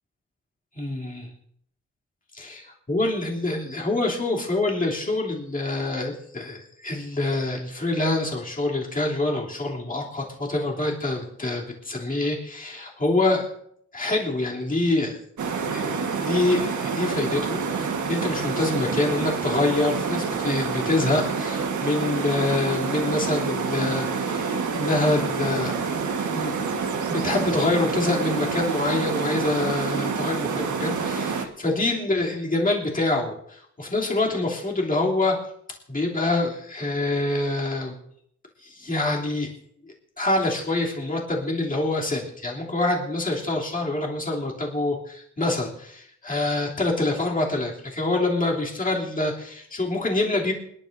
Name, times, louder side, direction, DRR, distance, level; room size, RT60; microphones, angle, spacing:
voice 1, 0.7-1.3 2.3-13.5 13.9-15.2 15.7-25.7 26.1-26.5 27.1-35.4 35.9-38.0 38.6-39.5 40.2-50.5, left 2 dB, 30° left, -3 dB, 3.1 m, -26 dB
sound 1, 15.4-31.5, right 5 dB, 75° right, 1.5 m, -27 dB
28.0 x 11.0 x 2.7 m, 0.69 s
wide cardioid pair, 130°, 30 cm